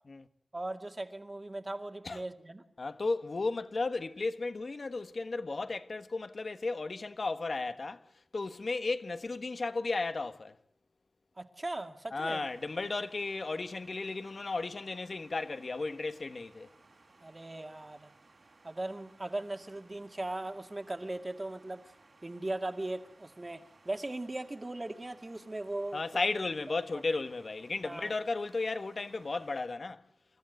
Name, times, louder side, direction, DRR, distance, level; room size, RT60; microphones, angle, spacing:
voice 1, 0.5-2.6 11.4-12.5 17.2-18.1 18.6-21.9 22.2-26.0 27.8-28.1, right 2 dB, 35° right, 2.2 m, -38 dB
voice 2, 2.8-8.0 8.3-10.6 12.1-16.7 25.9-30.0, left 3 dB, 65° left, 1.4 m, -34 dB
sound 1, 12.4-29.7, right 3 dB, 65° right, 4.3 m, -62 dB
27.5 x 14.0 x 9.3 m
wide cardioid pair, 65°, 0 cm